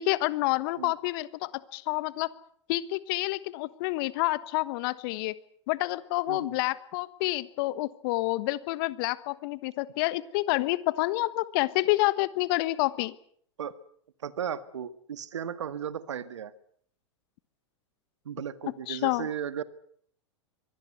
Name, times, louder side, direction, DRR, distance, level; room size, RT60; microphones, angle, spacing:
voice 1, 0.0-2.3 2.7-5.3 5.7-13.1 18.9-19.3, left 19 dB, 50° left, 17 dB, 1.3 m, -28 dB
voice 2, 6.3-6.6 13.6-13.8 14.2-16.5 18.2-19.6, right 8 dB, 70° right, 13 dB, 1.7 m, -35 dB
24.5 x 19.5 x 8.1 m, 0.64 s
figure-of-eight pair, 95°, 16 cm